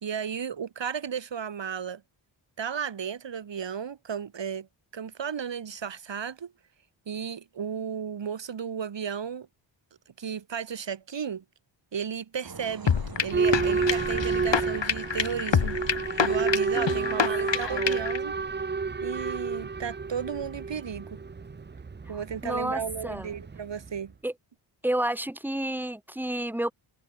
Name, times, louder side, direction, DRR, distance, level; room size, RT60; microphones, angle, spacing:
voice 1, 0.0-2.0 2.6-4.7 4.9-6.5 7.1-9.5 10.2-11.4 11.9-12.9 13.2-15.8 16.2-18.3 19.0-21.2 22.1-24.1, right 7 dB, 60° right, 2.7 m, -34 dB
sound 1, 12.4-17.6, right 4 dB, 45° right, 7.7 m, -46 dB
sound 2, 12.9-18.2, left 7 dB, 60° left, 3.2 m, -27 dB
Boat Water vehicle / Alarm, 13.3-24.0, right 4 dB, 20° right, 0.7 m, -30 dB
voice 2, 16.8-17.2 17.5-18.0 22.4-23.3 24.2-24.3 24.8-26.7, right 1 dB, 5° right, 1.9 m, -31 dB
cardioid pair, 85°, 49 cm